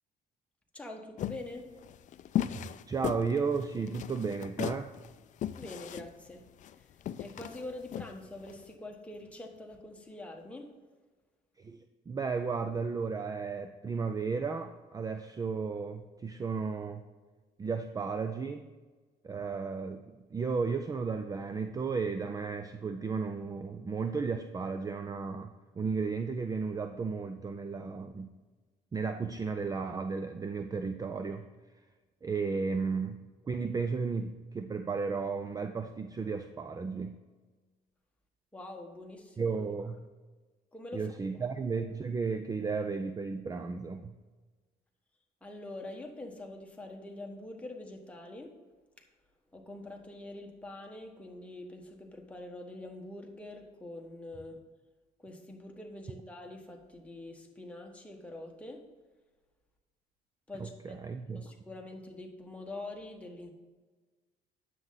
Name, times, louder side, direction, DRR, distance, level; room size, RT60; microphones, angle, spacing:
voice 1, 0.7-1.7 5.6-6.4 6.7-10.7 38.5-39.5 40.7-41.2 45.4-48.5 49.0-49.1 49.5-54.6 55.2-58.9 60.5-61.0 61.3-63.5, left 2 dB, 5° left, 1 dB, 1.5 m, -45 dB
sound 1, 1.2-8.6, left 11 dB, 45° left, 0.4 m, -37 dB
voice 2, 2.5-4.9 11.6-17.0 17.6-18.7 19.2-28.3 28.9-31.5 32.2-37.2 39.4-40.1 40.9-44.2 60.8-61.5, right 5 dB, 20° right, 9 dB, 0.4 m, -34 dB
9.6 x 7.6 x 4.0 m, 1.3 s
cardioid pair, 110°, 17 cm